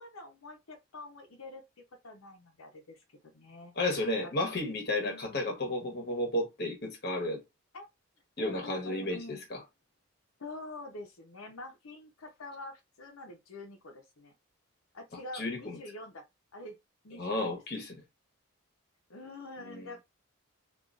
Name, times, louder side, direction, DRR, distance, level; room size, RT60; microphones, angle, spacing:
voice 1, 0.0-1.6 2.0-3.0 3.3-3.7 4.2-4.5 5.0-5.5 7.7-7.9 8.4-9.5 10.4-14.3 14.9-16.2 16.5-16.8 17.0-17.5 19.1-20.0, left 2 dB, 85° left, 0.9 m, -46 dB
voice 2, 3.7-7.4 8.4-9.6 15.3-15.8 17.1-18.0 19.6-19.9, left 1 dB, 50° left, 1.1 m, -33 dB
3.8 x 2.6 x 2.4 m
head